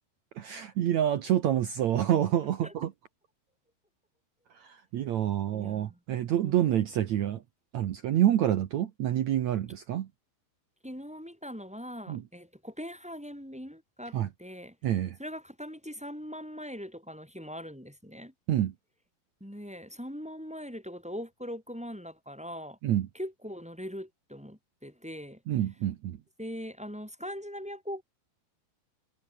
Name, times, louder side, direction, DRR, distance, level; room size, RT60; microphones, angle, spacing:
voice 1, 0.4-2.9 4.5-7.4 7.7-10.1 12.1-12.2 14.1-14.3 14.8-15.2 18.5-18.7 22.8-23.1 25.5-26.2, right 11 dB, 75° right, 1.7 m, -27 dB
voice 2, 5.5-6.0 6.3-6.8 10.8-14.7 15.2-18.3 19.4-22.8 23.1-25.4 26.4-28.0, equal, ahead, 3.3 m, -41 dB
omnidirectional pair, 4.9 m